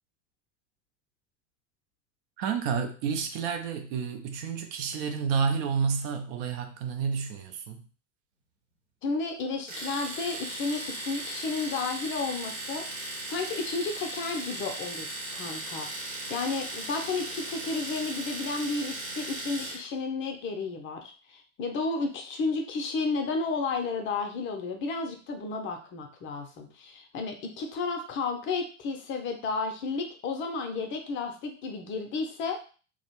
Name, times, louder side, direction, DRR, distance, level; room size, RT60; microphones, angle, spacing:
voice 1, 2.4-7.9, right 6 dB, 50° right, 6 dB, 0.5 m, -30 dB
voice 2, 9.0-32.6, left 4 dB, 35° left, 4 dB, 0.5 m, -32 dB
Domestic sounds home sounds, 9.7-19.9, right 2 dB, 75° right, 1.0 m, -37 dB
2.3 x 2.1 x 2.9 m, 0.37 s
figure-of-eight pair, 75°, 37 cm